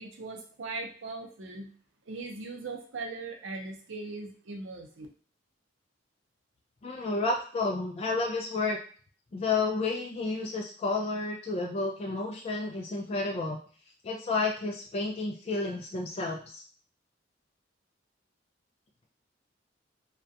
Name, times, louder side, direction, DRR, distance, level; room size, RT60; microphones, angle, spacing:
voice 1, 0.0-1.7 2.1-5.1, right 3 dB, 80° right, 2 dB, 0.6 m, -39 dB
voice 2, 6.8-8.8 9.3-13.6 14.0-16.6, left 3 dB, 35° left, 0 dB, 0.3 m, -31 dB
2.4 x 2.1 x 2.6 m, 0.43 s
head